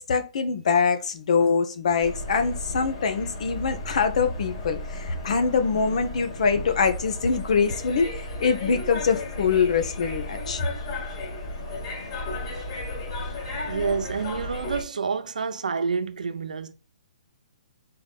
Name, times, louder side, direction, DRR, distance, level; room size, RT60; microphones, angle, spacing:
voice 1, 0.0-8.1 8.4-10.6, left 5 dB, 60° left, 1.3 m, -24 dB
sound 1, 2.0-14.8, left 2 dB, 40° left, 2.9 m, -34 dB
voice 2, 13.7-16.7, right 5 dB, 85° right, 0.9 m, -28 dB
4.6 x 4.0 x 5.7 m
hypercardioid pair, 150°, 4 cm